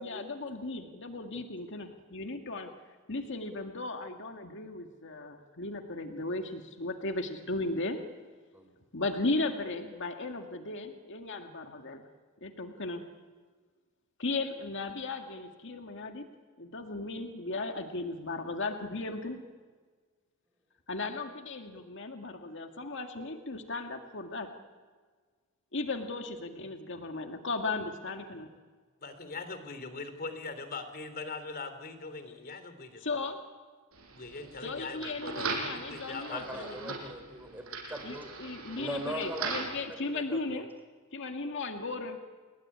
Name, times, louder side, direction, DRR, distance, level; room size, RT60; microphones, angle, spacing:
voice 1, 0.0-2.7 3.1-8.0 8.9-12.0 12.4-13.0 14.2-16.3 16.6-19.4 20.9-24.5 25.7-28.5 33.0-33.4 34.6-37.0 38.0-40.7 41.1-42.2, left 3 dB, 60° left, 5 dB, 2.1 m, -36 dB
voice 2, 29.0-33.2 34.1-36.8, left 4 dB, 45° left, 10 dB, 3.2 m, -41 dB
sound 1, 33.9-39.8, right 4 dB, 90° right, 7.1 m, -39 dB
voice 3, 36.3-38.3 38.8-39.6 39.9-40.6, right 1 dB, 10° right, 6 dB, 4.1 m, -40 dB
29.5 x 20.5 x 9.8 m, 1.5 s
head